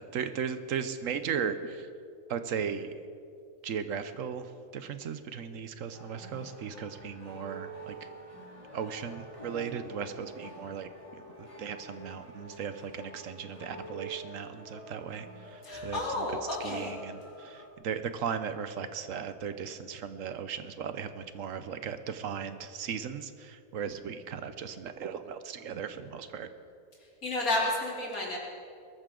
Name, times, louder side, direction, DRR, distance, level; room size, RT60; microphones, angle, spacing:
voice 1, 0.0-1.9 2.3-2.9 3.6-7.9 8.7-16.3 16.6-26.5, right 7 dB, 70° right, 10 dB, 1.1 m, -37 dB
sound 1, 5.9-17.7, right 1 dB, 20° left, 2.5 m, -47 dB
voice 2, 15.6-16.9 27.2-28.4, left 2 dB, 85° left, -3 dB, 3.3 m, -31 dB
21.0 x 14.0 x 3.8 m, 2.5 s
omnidirectional pair, 1.5 m